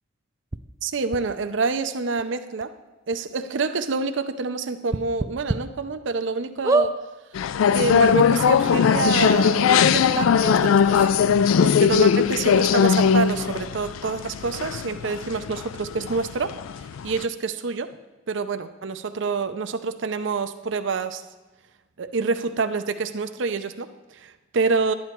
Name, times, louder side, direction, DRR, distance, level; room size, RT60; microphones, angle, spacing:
sound 1, 0.5-0.6 1.1-1.2 2.2-2.3 2.6-2.7 3.1-3.2 4.9-5.6 6.1-6.2 6.6-6.9 7.8-7.9 8.0-8.1, right 2 dB, 15° right, 0.4 m, -23 dB
voice 1, 0.8-2.7 3.1-6.9 7.7-11.1 11.6-16.6 17.0-17.9 18.3-21.2 22.0-24.9, right 4 dB, 65° right, 9 dB, 0.6 m, -27 dB
sound 2, 7.3-17.2, left 7 dB, 90° left, 0.3 m, -20 dB
11.5 x 9.5 x 4.4 m, 1.2 s
head